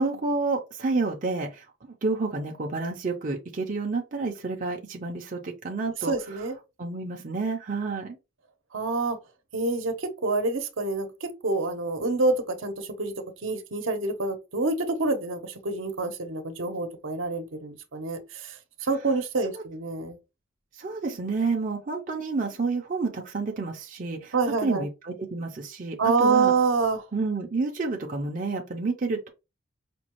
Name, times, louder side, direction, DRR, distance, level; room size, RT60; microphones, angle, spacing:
voice 1, 0.0-6.5 6.8-8.2 19.5-19.6 20.7-26.5 27.1-29.3, right 3 dB, 40° right, 0.5 m, -29 dB
voice 2, 6.1-6.5 8.7-9.2 9.5-18.6 18.8-20.2 24.3-24.8 26.0-27.0, right 3 dB, 75° right, 0.8 m, -27 dB
5.1 x 2.3 x 3.0 m
head